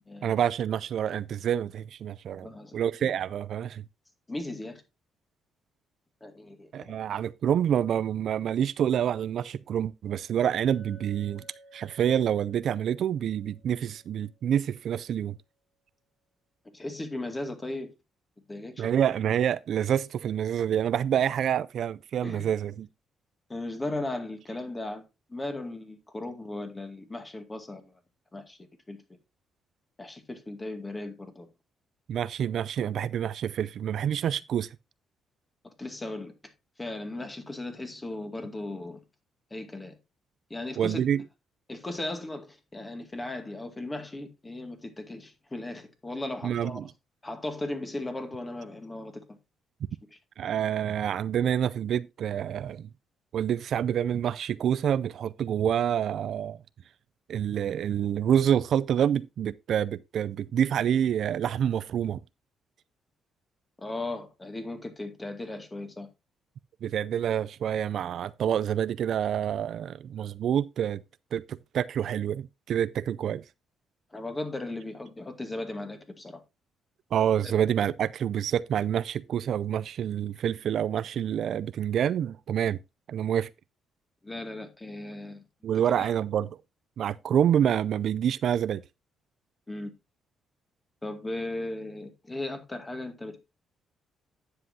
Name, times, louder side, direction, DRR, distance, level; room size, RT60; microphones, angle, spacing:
voice 1, 0.2-3.8 6.7-11.4 11.7-15.4 18.8-22.9 32.1-34.8 40.8-41.2 46.4-46.9 50.4-52.9 53.3-56.6 57.3-62.2 66.8-71.0 71.3-73.4 77.1-82.8 83.1-83.5 85.6-86.5 87.0-88.8, right 9 dB, 65° right, 0.4 m, -27 dB
voice 2, 2.4-2.8 4.3-4.8 6.2-7.0 16.7-17.9 18.5-18.9 22.2-22.5 23.5-25.0 25.3-27.9 28.3-28.6 28.9-29.0 30.0-31.5 35.6-36.3 36.8-39.0 39.5-40.0 40.5-41.0 41.7-46.8 47.2-49.4 63.8-66.1 74.1-76.4 77.4-77.5 84.2-85.4 86.0-86.1 89.7-89.9 91.0-93.4, left 2 dB, 20° left, 2.2 m, -37 dB
Chink clink, 10.7-14.9, right 1 dB, 75° left, 4.0 m, -56 dB
9.9 x 7.5 x 2.7 m
cardioid pair, 90°, 0 cm